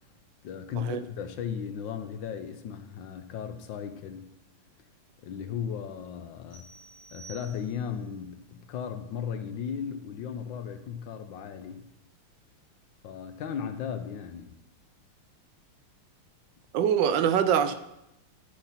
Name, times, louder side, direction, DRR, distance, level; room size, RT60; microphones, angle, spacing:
voice 1, 0.4-4.3 5.2-6.6 7.1-11.8 13.0-14.5, left 7 dB, 70° left, 9 dB, 1.3 m, -36 dB
sound 1, 6.5-8.0, right 5 dB, 35° right, 3.6 m, -50 dB
voice 2, 16.7-17.7, right 8 dB, 70° right, 10 dB, 1.2 m, -24 dB
11.5 x 5.7 x 4.3 m, 0.86 s
omnidirectional pair, 2.3 m